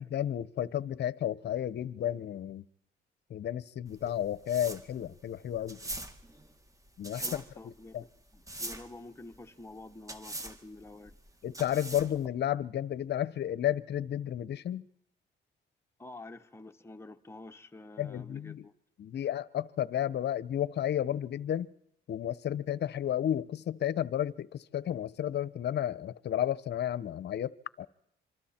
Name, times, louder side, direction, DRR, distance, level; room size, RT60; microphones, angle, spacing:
voice 1, 0.0-2.6 3.3-5.8 7.0-7.2 7.9-8.0 11.4-14.9 18.0-18.6 19.0-21.7 22.1-27.9, left 11 dB, 60° left, 0.8 m, -32 dB
sound 1, 3.9-12.3, right 1 dB, 15° right, 1.9 m, -43 dB
voice 2, 7.2-11.2 16.0-18.7, left 2 dB, 15° left, 1.3 m, -48 dB
26.5 x 24.5 x 4.4 m
cardioid pair, 90°, 20 cm